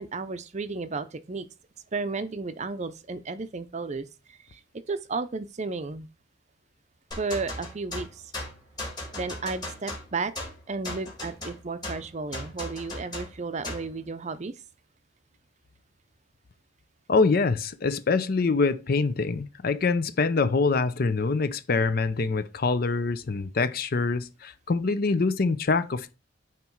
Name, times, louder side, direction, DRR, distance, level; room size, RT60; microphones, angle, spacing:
voice 1, 0.0-1.5 1.9-4.6 4.9-6.1 7.2-8.2 9.2-10.3 10.7-14.5, right 4 dB, 35° right, 0.5 m, -33 dB
sound 1, 7.1-13.9, left 1 dB, 20° left, 1.7 m, -37 dB
voice 2, 17.1-26.1, left 4 dB, 50° left, 0.5 m, -25 dB
9.2 x 3.1 x 4.5 m
head